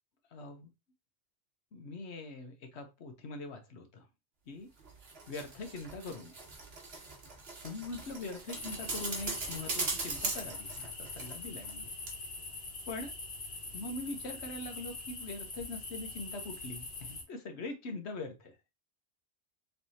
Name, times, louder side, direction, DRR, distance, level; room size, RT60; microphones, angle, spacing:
voice 1, 0.3-0.7 1.7-4.1 4.5-4.7 5.3-6.4 7.6-11.9 12.9-13.1 13.7-18.6, left 3 dB, 80° left, 5 dB, 1.2 m, -42 dB
sound 1, 4.8-11.8 12.1-12.2, right 3 dB, 65° right, 1.4 m, -40 dB
sound 2, 8.5-17.2, left 2 dB, 55° left, 1.4 m, -43 dB
4.5 x 3.3 x 2.7 m, 0.25 s
omnidirectional pair, 1.1 m